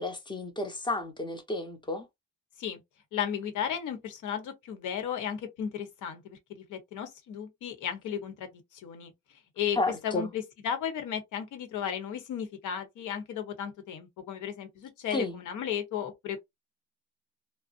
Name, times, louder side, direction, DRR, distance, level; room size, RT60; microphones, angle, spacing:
voice 1, 0.0-2.1 9.8-10.3 15.1-15.4, left 2 dB, 15° left, 0.8 m, -32 dB
voice 2, 3.1-9.1 9.6-9.8 10.0-16.4, left 8 dB, 80° left, 0.9 m, -35 dB
2.5 x 2.0 x 2.4 m
cardioid pair, 90°, 30 cm